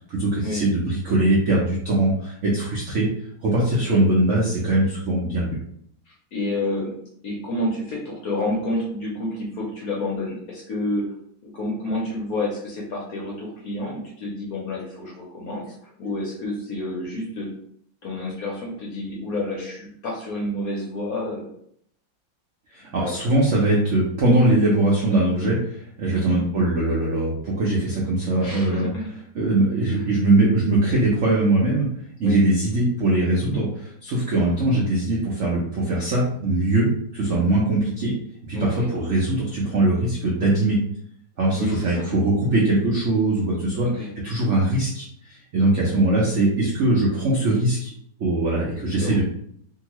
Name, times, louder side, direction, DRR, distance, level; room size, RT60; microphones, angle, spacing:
voice 1, 0.1-3.1 3.4-5.6 22.7-28.9 29.3-31.9 32.2-38.1 38.5-40.8 41.4-47.9 48.2-49.2, right 2 dB, 80° right, -4 dB, 0.6 m, -21 dB
voice 2, 6.1-6.9 7.2-11.0 11.4-15.7 16.0-17.5 18.0-21.5 22.9-23.1 26.1-26.5 28.4-29.1 32.2-32.4 38.5-38.9 41.5-42.1 43.8-44.1 48.9-49.2, left 1 dB, 65° left, -3 dB, 0.9 m, -29 dB
2.8 x 2.7 x 2.9 m, 0.67 s
omnidirectional pair, 2.2 m